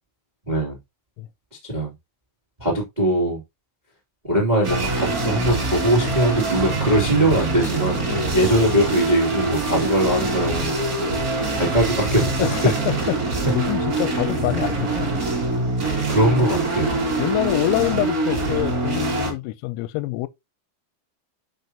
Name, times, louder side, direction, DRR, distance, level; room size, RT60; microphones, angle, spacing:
voice 1, 0.5-0.8 1.6-1.9 2.6-3.4 4.2-8.0 8.3-10.8 11.5-12.7 16.1-17.0, right 1 dB, 40° right, 0.5 m, -21 dB
sound 1, 4.6-19.3, right 2 dB, 60° right, 0.9 m, -24 dB
voice 2, 12.4-15.1 15.8-15.9 17.2-20.3, left 19 dB, 90° left, 3.4 m, -26 dB
11.0 x 5.7 x 2.9 m
omnidirectional pair, 6.0 m